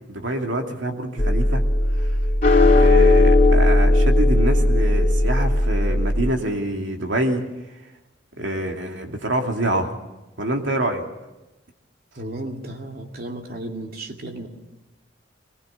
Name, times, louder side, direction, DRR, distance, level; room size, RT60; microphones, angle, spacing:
voice 1, 0.1-1.6 2.0-2.1 2.7-7.4 8.4-9.9 10.4-11.0, right 1 dB, 85° right, 3 dB, 2.7 m, -26 dB
sound 1, 1.2-6.3, left 1 dB, 45° left, 3.4 m, -17 dB
voice 2, 12.2-14.5, right 1 dB, 55° right, 2 dB, 2.6 m, -34 dB
22.0 x 19.5 x 7.0 m, 1.0 s
head